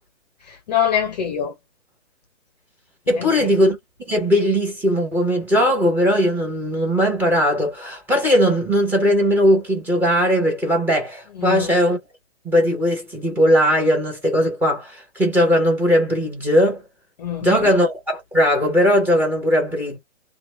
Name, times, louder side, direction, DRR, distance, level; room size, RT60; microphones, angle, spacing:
voice 1, 0.5-1.5 3.1-3.5 11.4-11.7 17.2-17.7, left 9 dB, 35° left, 0.6 m, -24 dB
voice 2, 3.1-3.8 4.1-12.0 12.4-16.8 17.4-20.0, equal, 5° right, 0.8 m, -19 dB
2.9 x 2.2 x 3.0 m
hypercardioid pair, 140°, 36 cm